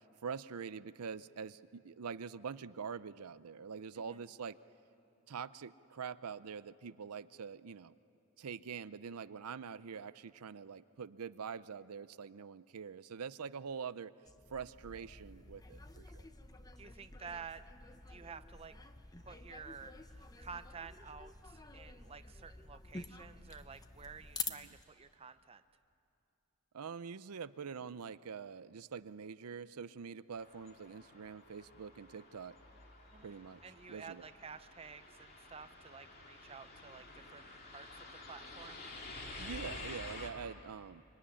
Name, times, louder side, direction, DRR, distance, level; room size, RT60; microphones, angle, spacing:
voice 1, 0.0-4.6 5.3-7.9 8.4-14.1 14.5-16.3 24.5-24.7 26.7-32.6 33.2-33.6 33.9-34.3 39.4-41.0, right 6 dB, 85° right, 15 dB, 0.6 m, -45 dB
sound 1, 14.3-24.8, left 4 dB, 15° left, 0.8 m, -49 dB
voice 2, 16.8-17.6 18.1-18.7 19.2-25.6 33.1-33.3 33.6-37.9 38.3-38.8, right 5 dB, 25° right, 11 dB, 0.6 m, -51 dB
sound 2, 30.4-40.3, left 2 dB, 45° left, 2.7 m, -50 dB
25.0 x 24.0 x 9.9 m, 2.7 s
head